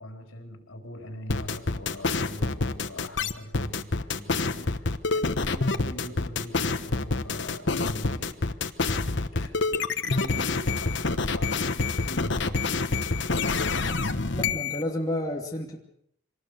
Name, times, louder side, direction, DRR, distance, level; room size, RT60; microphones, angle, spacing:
voice 1, 0.0-8.7 9.3-9.6 10.0-11.6 12.0-13.0, equal, 75° left, 4 dB, 4.4 m, -42 dB
sound 1, 1.3-14.8, left 3 dB, 60° left, 1.1 m, -27 dB
voice 2, 14.3-15.8, left 1 dB, 15° left, -1 dB, 2.5 m, -30 dB
24.0 x 19.5 x 6.7 m, 0.69 s
head